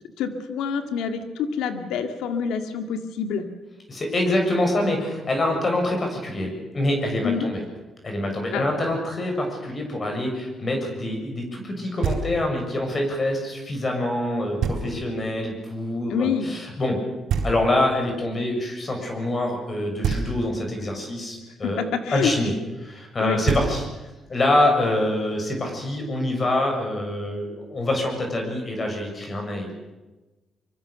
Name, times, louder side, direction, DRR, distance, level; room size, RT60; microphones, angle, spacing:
voice 1, 0.2-3.4 7.2-7.5 8.5-8.6 16.1-16.5 21.6-22.3 23.2-23.4, left 7 dB, 90° left, 7 dB, 2.3 m, -27 dB
voice 2, 3.9-7.6 8.0-17.0 17.4-21.8 22.1-22.5 22.8-23.8 24.3-29.9, left 1 dB, 35° left, 3 dB, 7.3 m, -25 dB
Knock, 12.0-12.7 14.6-15.3 17.3-18.1 20.0-20.8 23.1-23.2 23.5-24.3, right 6 dB, 75° right, 4.4 m, -28 dB
24.5 x 24.0 x 6.9 m, 1.1 s
cardioid pair, 90°, 0 cm